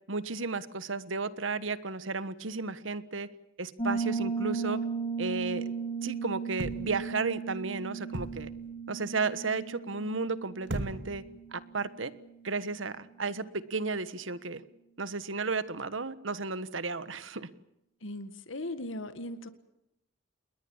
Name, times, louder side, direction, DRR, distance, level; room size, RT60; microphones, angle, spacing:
voice 1, 0.1-3.3 3.6-4.8 5.2-5.7 6.0-8.5 8.9-11.2 11.5-12.1 12.4-14.6 15.0-17.5, right 4 dB, 85° right, 1.4 m, -33 dB
Piano, 3.8-12.3, right 5 dB, 30° left, 2.7 m, -36 dB
sound 1, 6.6-7.1 8.1-8.6 10.7-11.3 12.1-12.2, right 1 dB, 65° right, 2.5 m, -37 dB
voice 2, 18.0-19.5, left 1 dB, 90° left, 1.9 m, -38 dB
28.5 x 21.5 x 7.3 m
head